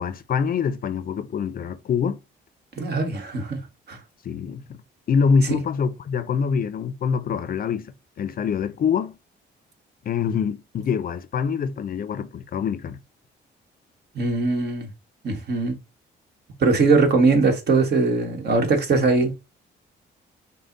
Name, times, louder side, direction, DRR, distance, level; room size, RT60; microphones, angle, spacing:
voice 1, 0.0-2.2 4.2-4.8 5.1-9.2 10.1-13.0, left 6 dB, 45° left, 0.5 m, -25 dB
voice 2, 2.8-3.6 3.9-4.0 5.5-5.6 14.1-14.9 15.2-15.8 16.6-19.3, right 3 dB, 55° right, 1.4 m, -21 dB
5.2 x 2.1 x 3.8 m
cardioid pair, 90°, 20 cm